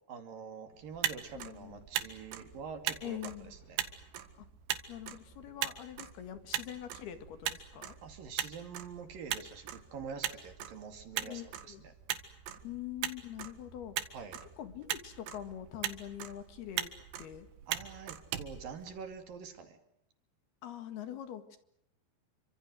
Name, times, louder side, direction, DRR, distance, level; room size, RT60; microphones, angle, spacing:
voice 1, 0.1-3.8 8.0-11.9 14.1-14.4 17.7-19.8, right 6 dB, 55° right, 7 dB, 4.0 m, -46 dB
Motor vehicle (road), 0.8-19.4, right 11 dB, 80° right, 3.9 m, -40 dB
voice 2, 1.3-1.8 3.0-3.5 4.4-4.5 4.9-8.0 11.2-11.8 12.6-14.0 14.6-16.9 17.2-17.5 20.6-21.6, left 11 dB, 65° left, 10 dB, 3.7 m, -44 dB
29.5 x 25.5 x 6.5 m, 0.76 s
omnidirectional pair, 4.9 m